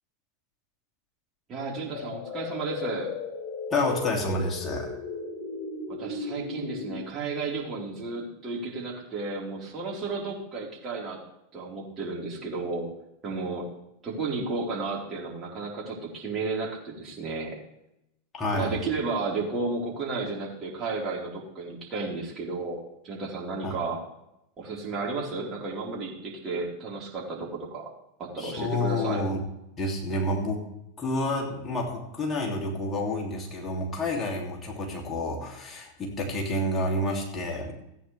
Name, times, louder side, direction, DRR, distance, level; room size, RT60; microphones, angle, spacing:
voice 1, 1.5-3.1 5.9-11.2 11.5-12.9 13.2-13.7 14.0-17.6 18.5-24.0 24.6-27.9 28.2-29.2, right 3 dB, 30° right, -3 dB, 4.1 m, -33 dB
sound 1, 1.9-7.0, left 4 dB, 45° left, 3.9 m, -36 dB
voice 2, 3.7-4.9 18.3-18.7 23.6-23.7 28.4-29.4 29.8-30.6 31.0-37.7, left 1 dB, 25° left, -1 dB, 2.7 m, -29 dB
15.5 x 9.2 x 3.4 m, 0.83 s
figure-of-eight pair, 90°, 0 cm